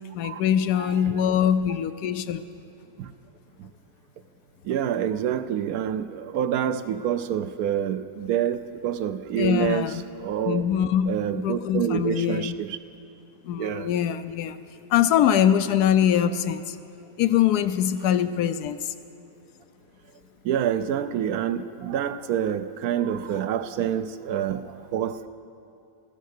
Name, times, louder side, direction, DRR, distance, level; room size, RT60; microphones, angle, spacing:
voice 1, 0.1-2.4 9.3-10.0 10.4-12.6 13.4-14.6 14.9-16.8 17.2-18.9, left 9 dB, 80° left, 11 dB, 1.1 m, -23 dB
voice 2, 0.8-1.2 3.0-3.1 3.6-3.7 4.6-10.6 11.1-12.8 13.6-13.9 20.4-25.3, right 9 dB, 70° right, 11 dB, 1.0 m, -27 dB
15.5 x 14.0 x 6.6 m, 2.6 s
omnidirectional pair, 1.7 m